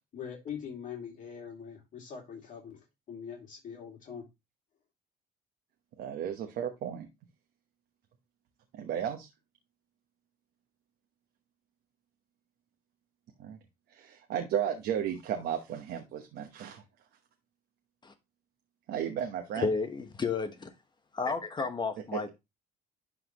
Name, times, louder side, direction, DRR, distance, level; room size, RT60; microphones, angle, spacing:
voice 1, 0.1-4.2, left 7 dB, 50° left, 0 dB, 2.4 m, -43 dB
voice 2, 6.0-7.1 8.7-9.3 13.4-13.6 13.9-16.8 18.9-19.7 22.1-22.3, right 9 dB, 75° right, 4 dB, 1.0 m, -34 dB
voice 3, 19.5-20.7 21.1-22.3, left 4 dB, 25° left, 7 dB, 1.1 m, -32 dB
11.5 x 3.8 x 2.9 m, 0.22 s
cardioid pair, 110°, 17 cm